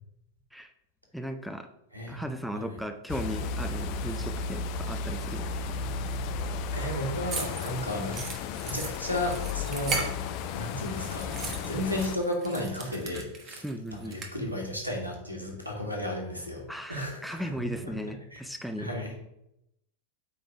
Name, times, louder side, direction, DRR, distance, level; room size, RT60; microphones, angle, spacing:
voice 1, 1.1-1.7 2.1-5.8 13.6-14.2 16.7-18.9, equal, ahead, 7 dB, 0.5 m, -37 dB
voice 2, 1.9-2.3 2.5-2.8 6.7-8.2 8.6-10.0 10.5-13.6 13.9-16.6 16.9-17.9 18.3-18.4 18.8-19.1, left 1 dB, 85° right, 1 dB, 1.8 m, -33 dB
sound 1, 3.1-12.2, left 5 dB, 45° left, 0.5 m, -34 dB
sound 2, 7.3-10.6 10.9-14.3, right 3 dB, 30° right, 1.2 m, -37 dB
8.5 x 3.6 x 4.6 m, 0.81 s
figure-of-eight pair, 90°, 0 cm